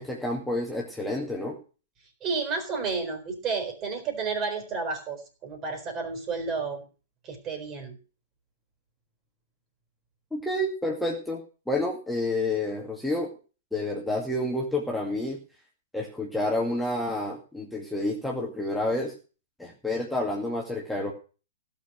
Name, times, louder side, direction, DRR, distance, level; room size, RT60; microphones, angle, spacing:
voice 1, 0.0-1.6 10.3-11.4 11.7-13.3 13.7-15.4 15.9-19.1 19.6-21.1, left 1 dB, 5° left, -2 dB, 2.3 m, -29 dB
voice 2, 2.2-6.8 7.2-8.0, right 4 dB, 25° right, 7 dB, 4.2 m, -31 dB
16.5 x 7.0 x 6.1 m, 0.35 s
figure-of-eight pair, 110°, 0 cm